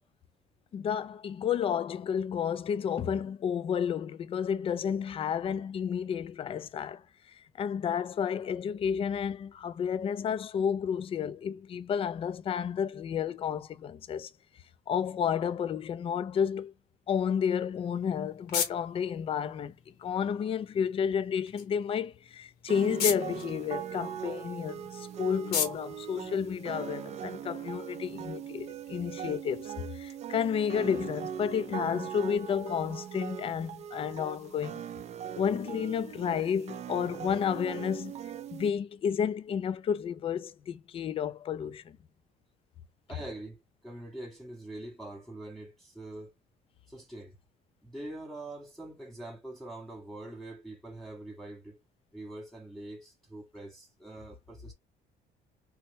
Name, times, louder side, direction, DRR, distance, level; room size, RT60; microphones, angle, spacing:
voice 1, 0.7-14.3 14.9-16.7 17.1-19.7 20.0-34.8 35.4-38.1 38.5-42.0, left 7 dB, 35° left, 0.3 m, -31 dB
sound 1, 17.7-27.1, left 7 dB, 75° left, 1.0 m, -39 dB
sound 2, 22.7-38.7, right 9 dB, 40° right, 0.4 m, -40 dB
voice 2, 43.1-46.3 46.9-47.4 47.8-51.8 52.1-54.7, right 1 dB, ahead, 0.7 m, -44 dB
3.0 x 2.2 x 3.0 m
cardioid pair, 110°, 17 cm